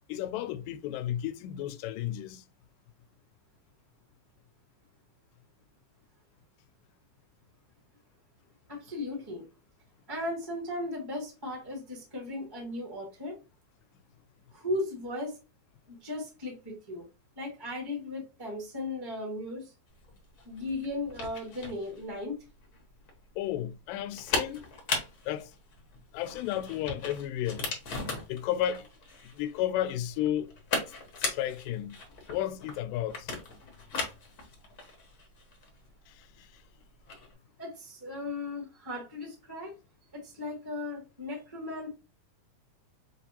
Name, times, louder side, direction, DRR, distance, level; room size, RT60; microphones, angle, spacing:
voice 1, 0.1-2.4 23.4-24.6 25.3-25.5 26.1-27.6 28.3-28.9 29.4-30.5 31.3-32.0 32.3-33.3 36.1-36.5, left 12 dB, 85° left, 2.2 m, -33 dB
voice 2, 8.7-9.4 10.1-13.4 14.5-15.4 15.9-17.1 17.4-19.7 20.4-22.4 37.6-39.7 40.1-41.9, left 2 dB, 25° right, 0.5 m, -36 dB
sound 1, 20.0-37.3, left 3 dB, 70° left, 0.8 m, -38 dB
6.8 x 2.5 x 2.8 m
omnidirectional pair, 3.8 m